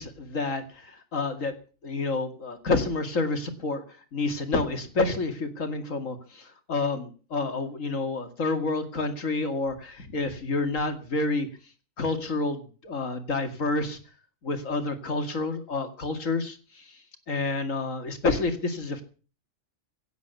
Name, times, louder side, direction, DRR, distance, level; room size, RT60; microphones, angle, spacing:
voice 1, 0.0-1.5 1.8-3.8 4.1-11.5 12.0-14.0 14.4-17.0 17.3-19.0, left 3 dB, 70° left, 7 dB, 2.7 m, -29 dB
17.0 x 8.1 x 8.3 m, 0.38 s
omnidirectional pair, 1.4 m